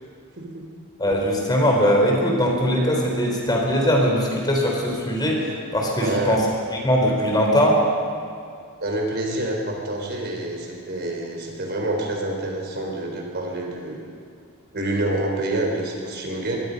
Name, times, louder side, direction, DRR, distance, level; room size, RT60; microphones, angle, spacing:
voice 1, 1.0-5.4 5.7-6.5 6.7-7.8, equal, 20° left, -1 dB, 3.8 m, -20 dB
voice 2, 6.0-6.4 8.8-14.0 14.7-16.6, right 1 dB, 50° right, 1 dB, 4.1 m, -27 dB
24.5 x 21.5 x 5.4 m, 2.3 s
head